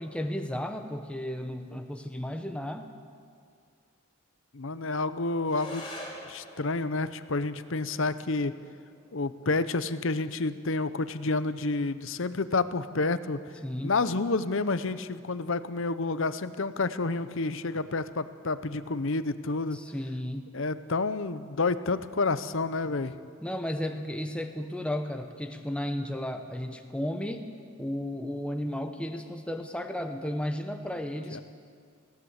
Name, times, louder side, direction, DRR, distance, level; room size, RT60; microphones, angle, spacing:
voice 1, 0.0-2.9 13.6-14.0 19.7-20.5 23.4-27.5 27.8-31.4, left 1 dB, 5° left, 5 dB, 1.0 m, -34 dB
voice 2, 4.5-5.9 6.3-8.5 9.1-13.4 13.8-19.8 20.5-23.1 31.3-31.4, left 3 dB, 65° left, 13 dB, 0.8 m, -29 dB
sound 1, 5.4-14.4, left 1 dB, 25° left, 4.5 m, -49 dB
20.5 x 16.5 x 8.1 m, 2.2 s
head